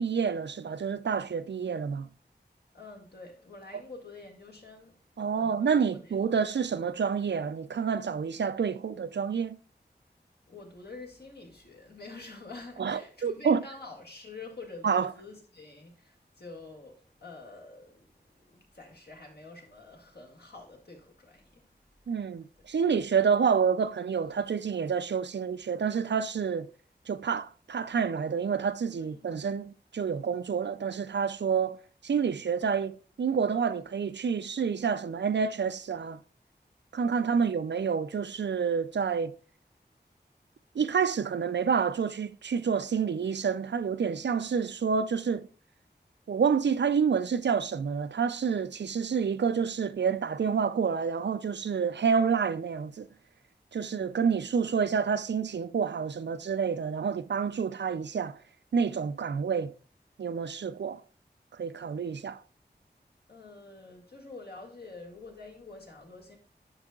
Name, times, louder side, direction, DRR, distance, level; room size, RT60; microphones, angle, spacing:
voice 1, 0.0-2.1 5.2-9.6 12.8-13.6 14.8-15.1 22.1-26.7 27.1-31.8 32.0-36.2 36.9-39.3 40.7-45.5 46.3-53.1 53.7-58.4 58.7-59.7 60.2-61.0 61.5-62.4, right 6 dB, 80° right, 0.4 m, -28 dB
voice 2, 2.7-4.9 5.4-6.0 10.5-18.0 18.3-21.6 28.9-29.5 37.2-37.7 53.8-54.4 63.3-66.4, left 3 dB, 65° left, 2.0 m, -47 dB
9.6 x 5.4 x 2.3 m
wide cardioid pair, 60°, 18 cm